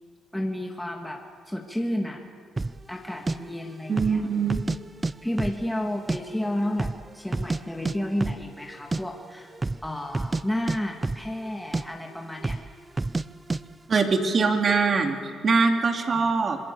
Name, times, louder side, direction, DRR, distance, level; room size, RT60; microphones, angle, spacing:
voice 1, 0.3-1.2 1.5-2.2 2.9-4.2 5.2-9.5 9.8-12.6 16.1-16.2, left 1 dB, 5° left, 1 dB, 2.3 m, -31 dB
sound 1, 2.6-2.8 3.3-3.4 3.9-4.2 4.5-5.1 5.4-6.2 6.5-6.6 6.8-7.6 7.9-8.0 8.2-8.4 8.7-9.0 9.5-9.8 10.1-10.4 10.7-11.5 11.7-11.9 12.4-12.7 13.0-13.3 13.5-13.6, right 3 dB, 20° right, 0.6 m, -28 dB
voice 2, 3.9-4.6 13.9-16.6, right 4 dB, 45° right, 4 dB, 2.8 m, -23 dB
26.0 x 20.5 x 7.1 m, 2.1 s
cardioid pair, 90°, 0 cm